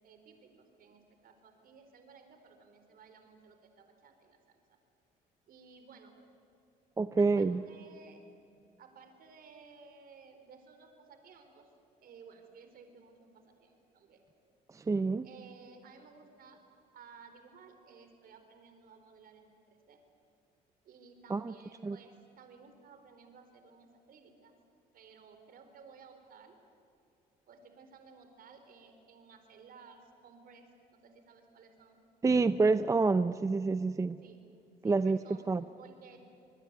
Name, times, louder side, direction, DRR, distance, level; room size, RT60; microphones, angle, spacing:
voice 1, 0.0-4.6 5.5-6.1 7.2-8.2 8.8-11.7 12.0-14.2 15.2-16.6 16.9-20.0 20.8-24.5 24.9-26.6 27.5-32.0 34.2-34.4 34.8-35.5 35.8-36.2, right 5 dB, 60° right, 6 dB, 4.2 m, -56 dB
voice 2, 7.0-7.6 14.7-15.3 21.3-21.5 21.8-22.0 32.2-34.2 34.8-35.2 35.5-35.6, right 3 dB, 20° right, 13 dB, 0.6 m, -27 dB
26.5 x 20.5 x 9.5 m, 2.6 s
cardioid pair, 110°, 17 cm